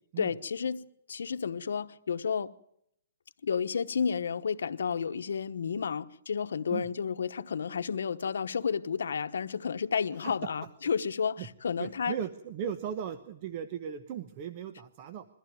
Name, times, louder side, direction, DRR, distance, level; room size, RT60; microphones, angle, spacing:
voice 1, 0.2-2.5 3.4-12.1, left 6 dB, 85° left, 1.1 m, -31 dB
voice 2, 11.8-15.3, right 8 dB, 30° right, 0.9 m, -37 dB
22.5 x 14.5 x 9.2 m
hypercardioid pair, 170°, 0 cm